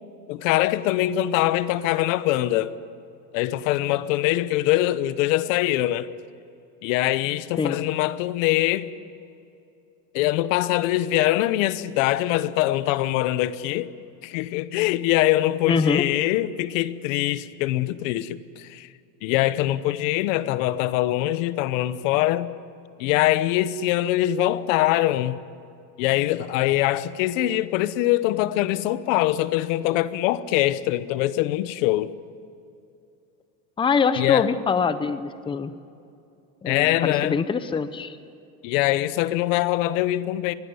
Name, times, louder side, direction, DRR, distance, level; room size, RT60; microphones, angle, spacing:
voice 1, 0.3-2.7 3.3-6.1 6.8-8.9 10.1-13.9 14.2-18.9 19.2-22.5 23.0-25.4 26.0-32.1 34.2-34.5 36.6-37.4 38.6-40.5, left 15 dB, 85° left, 1.0 m, -23 dB
voice 2, 15.7-16.0 33.8-35.7 36.6-38.2, left 5 dB, 15° left, 0.7 m, -24 dB
22.5 x 16.5 x 9.6 m
cardioid pair, 160°, 38 cm